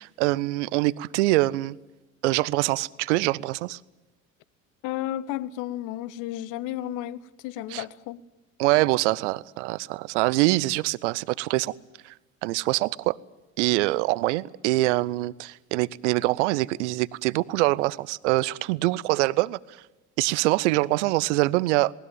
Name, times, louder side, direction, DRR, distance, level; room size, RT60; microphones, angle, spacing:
voice 1, 0.0-1.8 2.2-3.8 7.7-7.8 8.6-11.7 12.0-12.1 12.4-13.2 13.6-19.6 20.2-21.9, right 20 dB, 60° right, 0.7 m, -24 dB
voice 2, 4.8-8.2, left 13 dB, 50° left, 1.0 m, -33 dB
20.0 x 19.0 x 9.1 m
figure-of-eight pair, 65°, 40 cm